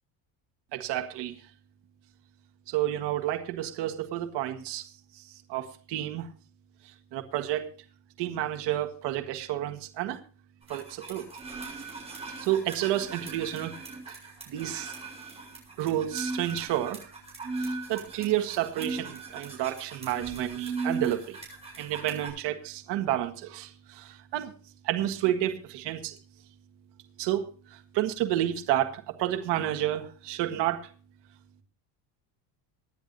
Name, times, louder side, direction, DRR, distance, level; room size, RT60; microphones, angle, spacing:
voice 1, 0.7-1.4 2.7-4.9 5.5-6.3 6.8-7.7 8.2-10.2 10.7-11.3 12.4-13.8 14.1-14.2 14.5-14.9 15.8-17.0 17.6-21.4 21.8-24.5 24.8-26.2 27.2-30.9, right 13 dB, 60° right, 1.8 m, -30 dB
sound 1, 10.7-22.3, right 3 dB, 15° right, 7.5 m, -37 dB
24.5 x 10.5 x 2.7 m
cardioid pair, 140°, 46 cm